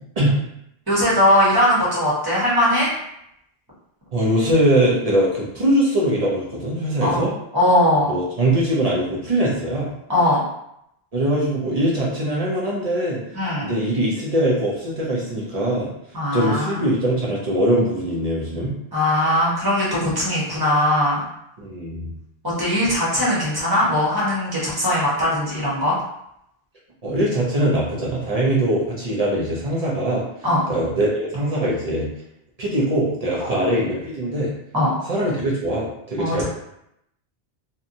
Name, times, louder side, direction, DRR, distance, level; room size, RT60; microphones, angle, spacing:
voice 1, 0.9-2.9 7.0-7.3 7.5-8.1 10.1-10.4 13.3-13.7 16.1-16.9 18.9-21.2 22.4-26.0 30.4-30.6 33.4-33.5 34.7-34.9 36.2-36.4, left 1 dB, 25° right, -8 dB, 1.0 m, -20 dB
voice 2, 4.1-7.3 8.1-9.9 11.1-13.2 13.6-15.9 16.3-18.8 21.6-22.1 27.0-30.2 30.7-32.1 32.6-34.5 35.1-36.4, right 1 dB, 45° right, -5 dB, 0.6 m, -22 dB
2.8 x 2.2 x 2.6 m, 0.78 s
omnidirectional pair, 1.0 m